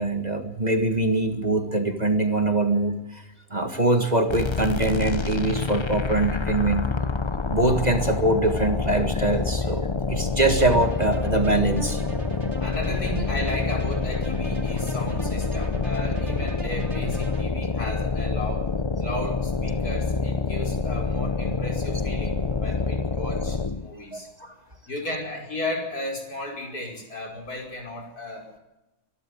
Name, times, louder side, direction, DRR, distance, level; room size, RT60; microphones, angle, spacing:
voice 1, 0.0-3.2 3.5-6.9 7.5-12.0 24.1-24.5, right 2 dB, 25° right, 6 dB, 1.9 m, -23 dB
sound 1, 4.3-23.9, left 4 dB, 25° left, 0.7 m, -27 dB
sound 2, 10.6-17.4, right 3 dB, 45° right, 2.9 m, -40 dB
voice 2, 12.6-18.7 19.0-24.3 24.9-28.5, left 1 dB, 80° left, 1 dB, 5.8 m, -34 dB
24.0 x 12.0 x 9.5 m, 0.97 s
omnidirectional pair, 1.6 m